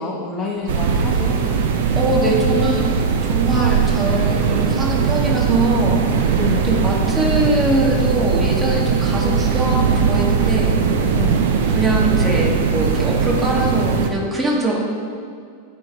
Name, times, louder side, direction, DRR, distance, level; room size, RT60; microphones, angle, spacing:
voice 1, 0.0-1.4 6.3-6.7 11.1-11.4, left 4 dB, 25° left, -4 dB, 0.9 m, -27 dB
sound 1, 0.7-14.1, right 6 dB, 55° right, 0.6 m, -19 dB
voice 2, 1.9-3.0 3.2-6.4 6.6-10.8 11.7-14.8, right 1 dB, 15° right, -2 dB, 1.3 m, -22 dB
9.8 x 3.8 x 4.8 m, 2.1 s
figure-of-eight pair, 90°, 0 cm